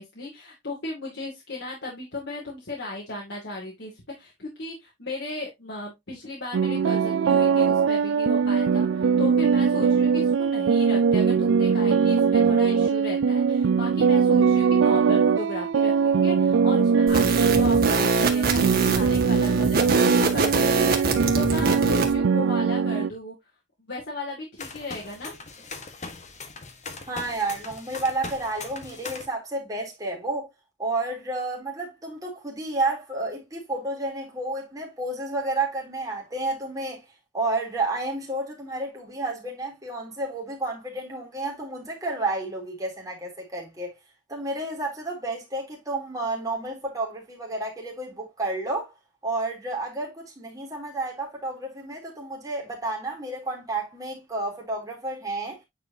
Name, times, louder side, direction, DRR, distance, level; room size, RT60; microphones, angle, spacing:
voice 1, 0.0-3.9 4.2-23.3 23.9-25.4, left 2 dB, 65° left, 2.5 m, -35 dB
sound 1, 6.5-23.1, right 6 dB, 85° right, 0.4 m, -21 dB
sound 2, 17.1-22.1, right 3 dB, 50° right, 1.7 m, -24 dB
sound 3, 24.6-29.3, left 4 dB, 40° left, 1.4 m, -40 dB
voice 2, 27.1-30.5 30.8-37.0 37.3-44.0 44.3-48.9 49.2-55.6, right 2 dB, 20° right, 3.4 m, -31 dB
9.3 x 4.9 x 2.8 m
head